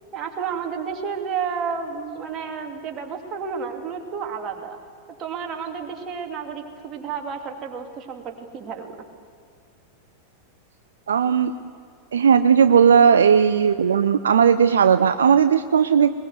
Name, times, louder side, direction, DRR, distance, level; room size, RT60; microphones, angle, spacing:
voice 1, 0.1-4.8 5.2-8.9, right 6 dB, 30° right, 3 dB, 2.8 m, -31 dB
voice 2, 11.1-11.5 12.1-16.1, right 7 dB, 65° right, 11 dB, 0.6 m, -16 dB
21.0 x 20.5 x 7.9 m, 2.3 s
figure-of-eight pair, 90°, 0 cm